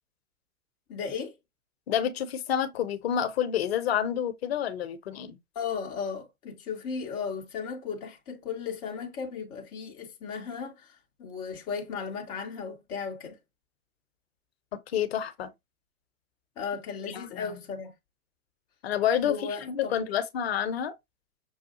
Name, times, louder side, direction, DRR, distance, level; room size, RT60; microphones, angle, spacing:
voice 1, 0.9-1.4 5.5-13.4 16.6-17.9 19.2-19.9, left 6 dB, 10° left, 0.4 m, -36 dB
voice 2, 1.9-5.4 14.7-15.5 17.1-17.6 18.8-19.4 19.6-20.9, left 9 dB, 45° left, 0.7 m, -29 dB
6.2 x 2.3 x 2.8 m
figure-of-eight pair, 110°, 43 cm